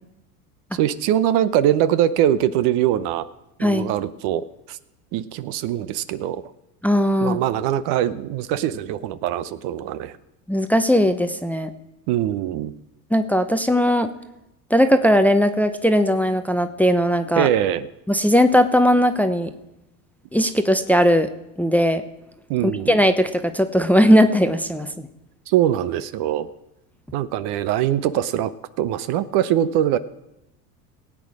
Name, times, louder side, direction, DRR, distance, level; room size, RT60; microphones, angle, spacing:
voice 1, 0.7-3.3 3.6-4.8 5.1-6.4 7.2-10.2 12.1-12.7 17.4-17.9 22.5-23.0 25.5-26.5 27.1-28.5 28.8-30.0, right 11 dB, 55° right, 14 dB, 0.8 m, -22 dB
voice 2, 6.8-7.4 10.5-11.7 13.1-14.1 14.7-17.5 18.1-19.5 20.3-21.3 21.6-22.0 22.6-25.1, equal, 5° left, 9 dB, 0.7 m, -18 dB
18.5 x 8.4 x 4.9 m, 0.90 s
hypercardioid pair, 85°, 47 cm